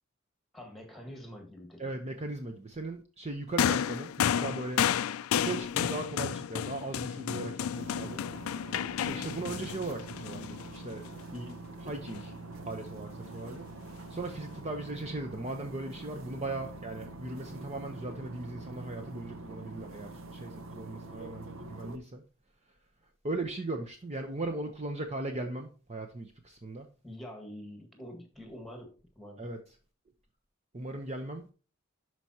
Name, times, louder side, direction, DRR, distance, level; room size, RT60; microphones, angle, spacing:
voice 1, 0.5-2.0 27.0-29.5, equal, ahead, 1.9 m, -46 dB
voice 2, 1.8-4.9 5.3-8.3 9.0-11.0 11.3-12.3 12.7-13.7 14.1-22.2 23.2-26.9 29.4-29.6 30.7-31.5, right 2 dB, 30° right, 0.8 m, -38 dB
sound 1, 3.6-11.1 12.1-12.2, left 9 dB, 85° left, 0.4 m, -31 dB
sound 2, 7.7-22.0, right 2 dB, 70° right, 0.8 m, -45 dB
12.0 x 4.7 x 2.9 m
head